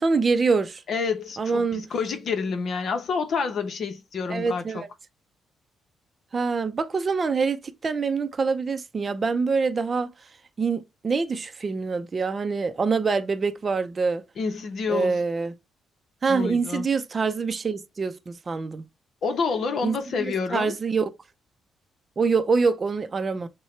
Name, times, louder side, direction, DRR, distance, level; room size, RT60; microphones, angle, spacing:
voice 1, 0.0-0.8 1.4-1.8 4.3-4.9 6.3-10.1 10.6-14.2 14.9-15.5 16.2-18.8 19.8-20.0 20.5-21.1 22.2-23.5, right 4 dB, 35° right, 0.6 m, -25 dB
voice 2, 0.9-4.8 14.4-15.2 16.3-16.9 19.2-20.8, left 5 dB, 60° left, 0.9 m, -28 dB
6.3 x 2.2 x 3.2 m
cardioid pair, 90°, 0 cm